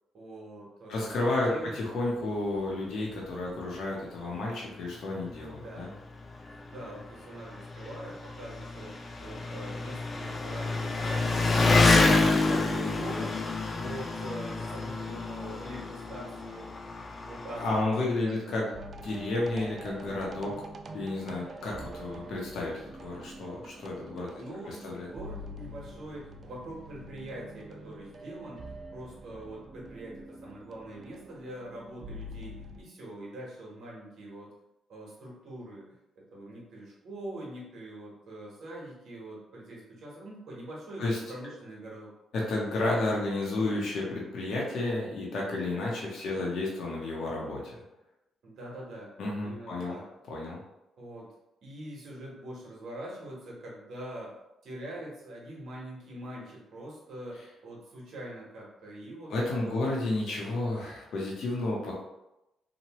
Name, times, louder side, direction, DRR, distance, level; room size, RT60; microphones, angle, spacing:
voice 1, 0.1-1.7 5.6-5.9 6.7-13.4 13.7-16.7 17.2-17.9 18.2-18.8 24.4-28.6 28.9-34.5 34.9-35.9 36.2-42.1 46.3-46.5 48.4-49.1 49.4-50.0 51.0-51.3 51.6-54.3 54.6-59.9, right 1 dB, 65° right, -4 dB, 1.1 m, -43 dB
voice 2, 0.9-5.9 17.6-18.7 19.0-20.5 20.9-24.3 24.7-25.1 41.0-41.2 42.3-47.6 49.2-50.0 50.3-50.6 59.3-62.0, left 2 dB, 70° left, -3 dB, 0.7 m, -31 dB
Engine, 3.3-3.4 3.7-3.8 4.8-4.9 5.1-17.8, left 3 dB, 40° left, 0.3 m, -28 dB
sound 1, 18.7-32.8, right 1 dB, 45° right, 0.3 m, -45 dB
2.9 x 2.2 x 2.9 m, 0.90 s
cardioid pair, 90°, 0 cm